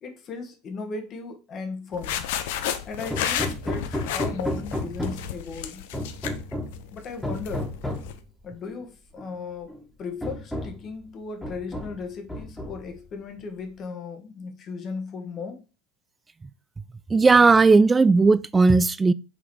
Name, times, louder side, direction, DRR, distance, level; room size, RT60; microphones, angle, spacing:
voice 1, 0.0-2.3 2.8-5.8 6.9-7.7 8.4-9.7 10.0-15.6, left 4 dB, 40° left, 1.7 m, -36 dB
sound 1, 1.9-8.2, left 10 dB, 65° left, 0.7 m, -32 dB
Hammer, 3.1-5.4 5.9-6.8 7.2-8.1 9.2-9.3 9.7-9.8 10.2-10.9 11.4-12.0 12.3-13.0, left 1 dB, 5° left, 1.9 m, -32 dB
voice 2, 17.1-19.1, right 4 dB, 20° right, 0.4 m, -16 dB
5.8 x 3.9 x 4.7 m
hypercardioid pair, 80°, 0 cm